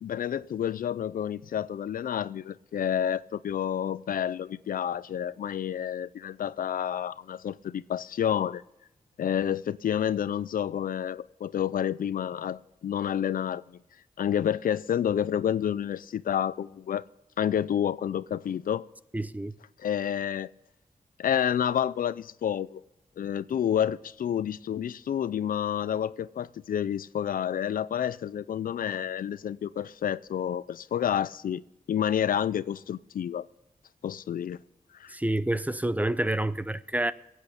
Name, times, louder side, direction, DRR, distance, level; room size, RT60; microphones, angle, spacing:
voice 1, 0.0-8.6 9.2-13.8 14.2-17.0 17.4-18.8 19.8-20.5 21.2-22.8 23.2-31.6 31.9-33.5 34.0-34.6 35.0-35.1, left 9 dB, 75° left, 0.4 m, -29 dB
voice 2, 19.1-19.6 35.1-37.1, right 1 dB, 10° right, 0.5 m, -28 dB
22.5 x 8.4 x 5.1 m
wide cardioid pair, 85°, 15 cm